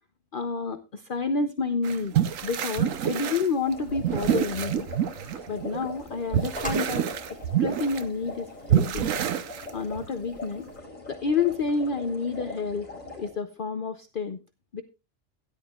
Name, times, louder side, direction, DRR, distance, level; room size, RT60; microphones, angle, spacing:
voice 1, 0.3-2.1 2.4-4.9 5.5-7.1 7.6-9.1 9.7-10.7 11.1-12.9 13.2-14.4 14.7-14.8, left 4 dB, 50° left, 9 dB, 0.9 m, -29 dB
sound 1, 1.8-6.0 6.3-8.0 8.7-10.1, right 9 dB, 90° right, 1.2 m, -27 dB
sound 2, 3.5-10.8, equal, 5° left, 3.0 m, -46 dB
sound 3, 3.7-13.3, left 2 dB, 30° left, 4.6 m, -42 dB
16.5 x 11.0 x 2.4 m, 0.27 s
omnidirectional pair, 1.3 m